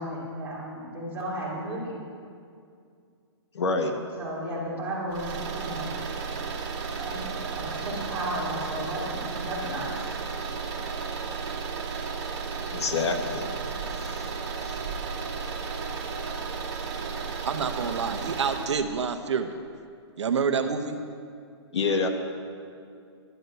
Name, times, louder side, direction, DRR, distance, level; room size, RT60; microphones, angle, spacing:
voice 1, 0.0-1.9 4.2-5.9 7.0-10.1, equal, 10° right, -8 dB, 3.2 m, -34 dB
voice 2, 3.5-3.9 12.7-13.5 14.0-14.3 14.6-14.8 21.7-22.1, left 4 dB, 70° left, 5 dB, 1.5 m, -27 dB
sound 1, 5.1-18.8, right 5 dB, 40° right, 2.2 m, -33 dB
voice 3, 17.4-19.5 20.2-21.0, right 6 dB, 80° right, 8 dB, 1.0 m, -27 dB
11.5 x 9.8 x 6.7 m, 2.3 s
hypercardioid pair, 165°, 15 cm